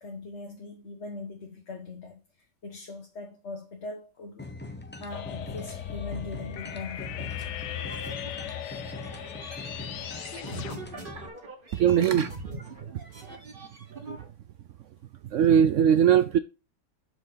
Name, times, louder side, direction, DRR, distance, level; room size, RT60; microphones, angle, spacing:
voice 1, 0.0-4.5 5.0-7.5, left 3 dB, 45° left, 1.3 m, -41 dB
sound 1, 4.4-11.3, left 2 dB, 10° left, 0.5 m, -42 dB
sound 2, 5.1-10.8, left 10 dB, 75° left, 1.3 m, -38 dB
sound 3, 7.6-14.2, right 1 dB, 30° right, 1.7 m, -42 dB
voice 2, 11.7-12.3 15.3-16.4, right 9 dB, 80° right, 0.6 m, -20 dB
7.3 x 6.1 x 3.9 m
omnidirectional pair, 1.8 m